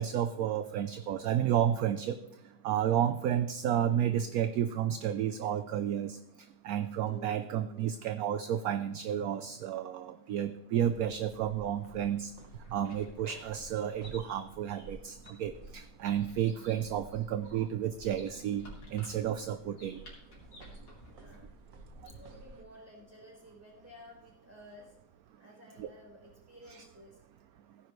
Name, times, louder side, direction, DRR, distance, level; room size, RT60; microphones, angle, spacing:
voice 1, 0.0-2.2 2.6-6.2 6.6-12.3 12.7-18.6 18.9-20.0 25.8-25.9 26.7-26.8, right 10 dB, 65° right, 10 dB, 0.9 m, -31 dB
sound 1, 4.7-10.4 10.6-11.1 11.4-12.5 12.9-15.5, right 1 dB, 25° right, 4.8 m, -59 dB
sound 2, 10.8-22.6, right 2 dB, 50° right, 1.5 m, -53 dB
sound 3, 12.2-22.5, left 2 dB, 90° left, 4.1 m, -56 dB
voice 2, 21.1-25.0 25.4-27.2, left 1 dB, 10° right, -3 dB, 4.4 m, -54 dB
17.0 x 10.0 x 3.2 m, 0.84 s
omnidirectional pair, 1.9 m